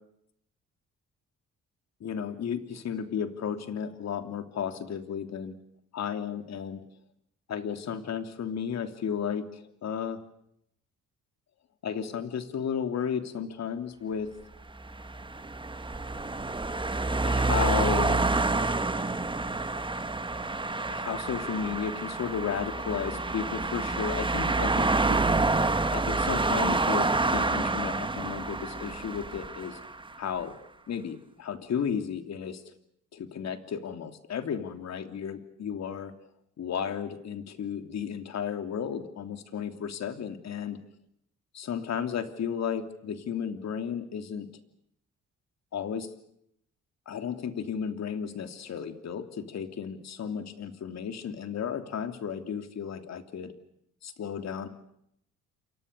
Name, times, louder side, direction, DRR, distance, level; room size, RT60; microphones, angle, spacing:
voice 1, 2.0-5.5 5.9-6.8 7.5-10.2 11.8-14.3 17.2-18.2 20.9-25.2 25.9-29.8 30.2-30.6 30.9-32.6 33.1-36.1 36.6-40.8 41.5-44.5 45.7-46.1 47.1-53.5 54.0-54.7, left 7 dB, 60° left, 8 dB, 3.1 m, -33 dB
sound 1, 14.7-30.1, right 3 dB, 15° right, 1.5 m, -28 dB
28.5 x 24.5 x 6.8 m, 0.75 s
cardioid pair, 90°, 30 cm